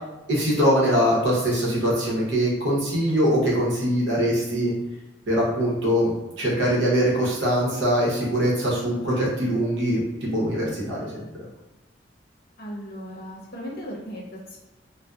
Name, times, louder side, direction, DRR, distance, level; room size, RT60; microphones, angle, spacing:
voice 1, 0.3-4.7 5.3-6.1 6.4-11.2, equal, 75° right, -5 dB, 0.9 m, -22 dB
voice 2, 12.6-14.6, equal, 55° left, -3 dB, 0.6 m, -37 dB
2.6 x 2.1 x 2.3 m, 1.0 s
head